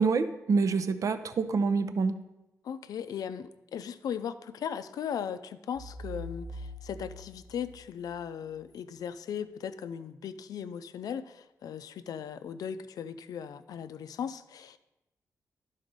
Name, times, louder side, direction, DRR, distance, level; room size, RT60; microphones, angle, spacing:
voice 1, 0.0-2.2, right 4 dB, 60° right, 9 dB, 0.6 m, -26 dB
voice 2, 2.6-14.8, left 8 dB, 85° left, 11 dB, 0.4 m, -38 dB
sound 1, 5.8-8.6, equal, 85° right, 1.9 m, -44 dB
11.5 x 4.1 x 5.1 m, 0.96 s
cardioid pair, 90°, 6 cm